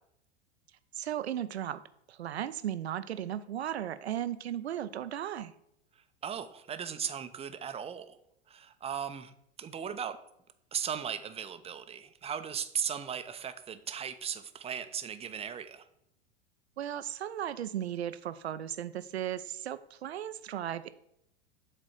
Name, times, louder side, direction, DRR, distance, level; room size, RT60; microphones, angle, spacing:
voice 1, 0.9-1.8 2.1-5.5 16.8-20.9, right 11 dB, 85° right, 14 dB, 0.6 m, -36 dB
voice 2, 6.2-8.2 8.5-9.3 9.6-10.2 10.7-15.8, right 8 dB, 20° right, 10 dB, 0.6 m, -37 dB
7.6 x 4.0 x 6.4 m, 0.77 s
hypercardioid pair, 95°, 31 cm